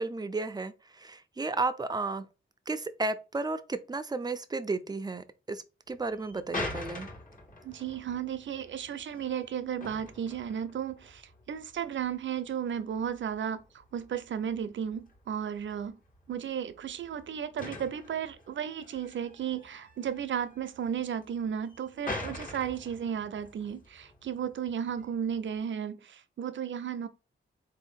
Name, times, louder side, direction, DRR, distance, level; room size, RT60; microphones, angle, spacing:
voice 1, 0.0-2.2 2.7-7.1, right 3 dB, 20° right, 0.5 m, -33 dB
sound 1, 5.9-25.6, left 2 dB, 40° left, 1.5 m, -45 dB
voice 2, 7.6-16.0 16.3-27.1, right 8 dB, 65° right, 0.6 m, -34 dB
4.2 x 2.8 x 4.3 m
wide cardioid pair, 125°, 21 cm